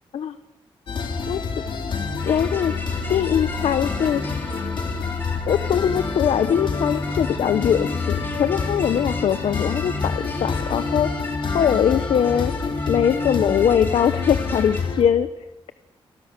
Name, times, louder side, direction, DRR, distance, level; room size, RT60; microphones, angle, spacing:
sound 1, 0.9-15.0, left 4 dB, 60° left, 3.9 m, -27 dB
sound 2, 2.2-14.8, left 2 dB, 20° left, 3.7 m, -36 dB
voice 1, 2.3-2.7 3.1-4.2 5.5-11.1 11.5-12.5 12.9-15.3, left 9 dB, 90° left, 11 dB, 1.0 m, -21 dB
29.5 x 23.5 x 6.8 m, 1.1 s
wide cardioid pair, 130°, 10 cm